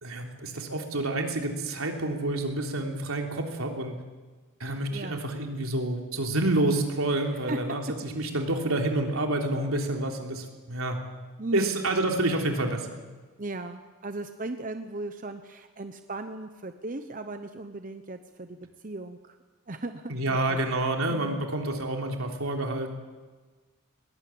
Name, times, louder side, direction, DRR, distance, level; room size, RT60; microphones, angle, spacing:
voice 1, 0.0-4.0 4.6-11.0 11.5-13.0 20.1-23.0, right 2 dB, 85° right, 2 dB, 3.5 m, -28 dB
voice 2, 4.9-5.2 7.5-7.6 11.4-11.8 13.4-19.4 19.7-20.6 21.1-21.5, right 2 dB, 40° right, 8 dB, 0.9 m, -37 dB
21.0 x 18.5 x 8.8 m, 1.3 s
head